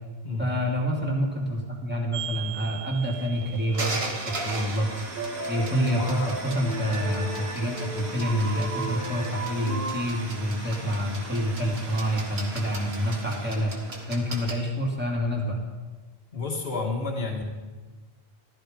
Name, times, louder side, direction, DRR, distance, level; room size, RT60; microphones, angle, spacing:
voice 1, 0.4-4.9 5.5-13.8 14.1-15.6, equal, 10° right, -3 dB, 2.6 m, -27 dB
sound 1, 2.1-14.6, right 2 dB, 80° right, 2.0 m, -37 dB
sound 2, 4.3-4.7 5.2-10.0, right 2 dB, 60° right, 2.1 m, -35 dB
voice 2, 5.7-6.3 16.3-17.4, left 3 dB, 75° left, 1 dB, 2.2 m, -31 dB
14.0 x 13.0 x 5.2 m, 1.3 s
omnidirectional pair, 1.0 m